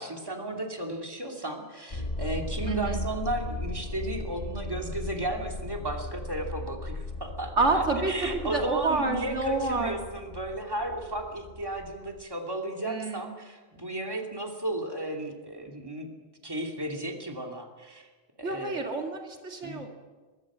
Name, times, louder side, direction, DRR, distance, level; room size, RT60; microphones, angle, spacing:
voice 1, 0.0-16.1 16.4-18.1 18.4-18.8 19.6-19.8, right 1 dB, 20° right, 2 dB, 2.8 m, -34 dB
sound 1, 1.9-12.2, left 2 dB, 35° left, 1.4 m, -37 dB
voice 2, 2.6-3.0 7.6-10.0 12.8-13.3 18.4-19.9, right 3 dB, 80° right, 2 dB, 2.6 m, -28 dB
23.5 x 23.0 x 6.3 m, 1.3 s
omnidirectional pair, 1.2 m